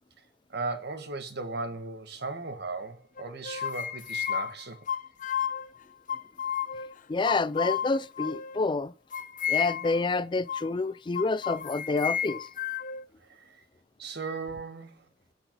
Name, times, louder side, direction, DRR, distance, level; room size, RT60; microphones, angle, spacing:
voice 1, 0.5-4.8 13.2-13.6 14.0-15.0, right 3 dB, 60° right, 1.6 m, -37 dB
sound 1, 3.2-5.7 6.1-6.9 7.2-8.6 9.1-10.0 10.5-10.7 11.1-13.0, left 8 dB, 45° left, 0.8 m, -32 dB
voice 2, 7.1-8.9 9.5-12.5, left 3 dB, 25° left, 0.4 m, -28 dB
11.5 x 6.2 x 5.2 m
head